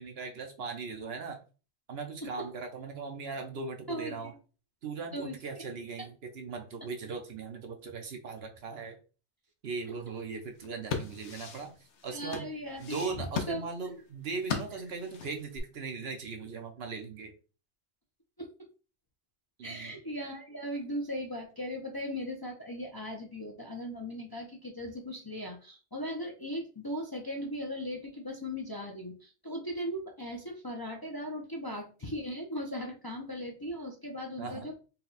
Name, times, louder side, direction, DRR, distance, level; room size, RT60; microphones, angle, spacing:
voice 1, 0.0-1.4 1.9-4.3 4.8-9.0 9.6-12.5 12.8-17.3 19.6-20.0 34.4-34.7, right 4 dB, 65° right, 4 dB, 1.0 m, -39 dB
voice 2, 3.9-4.3 5.1-5.4 12.1-13.1 13.5-13.7 18.4-18.5 19.6-34.8, equal, 25° left, 1 dB, 0.6 m, -38 dB
sound 1, 10.5-15.6, left 6 dB, 80° left, 1.1 m, -38 dB
4.1 x 2.2 x 4.0 m, 0.35 s
omnidirectional pair, 1.2 m